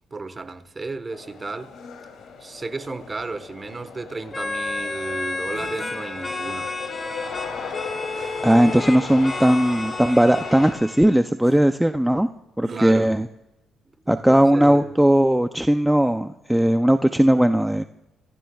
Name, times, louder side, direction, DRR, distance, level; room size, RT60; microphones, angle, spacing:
voice 1, 0.1-1.7 2.4-6.8 12.7-13.2 14.0-14.9, right 3 dB, 30° right, 1.3 m, -33 dB
sound 1, 1.1-10.7, left 6 dB, 70° left, 2.9 m, -37 dB
sound 2, 4.3-11.2, left 3 dB, 25° left, 2.1 m, -31 dB
sound 3, 5.5-6.0 8.1-8.8 9.5-9.6 11.4-11.6 12.6-12.9, right 6 dB, 60° right, 2.3 m, -42 dB
voice 2, 8.4-12.3 12.6-13.2 14.1-17.8, right 1 dB, 5° right, 0.5 m, -18 dB
27.0 x 15.0 x 2.4 m
cardioid pair, 90°, 0 cm